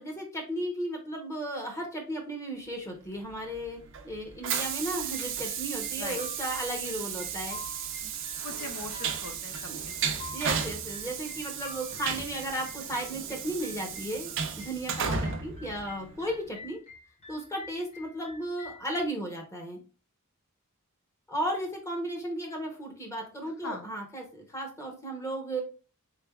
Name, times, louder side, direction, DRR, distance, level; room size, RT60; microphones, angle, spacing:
voice 1, 0.0-3.8 4.0-7.6 9.7-9.8 10.3-16.8 17.3-19.8 21.3-25.6, right 1 dB, 15° left, 1 dB, 0.7 m, -35 dB
Train, 3.3-16.5, right 7 dB, 60° right, 0.5 m, -35 dB
sound 1, 4.9-19.1, left 3 dB, 30° left, 1.1 m, -49 dB
voice 2, 8.4-10.2 23.6-24.0, left 3 dB, 80° left, 6 dB, 0.6 m, -41 dB
3.7 x 3.3 x 2.3 m, 0.35 s
head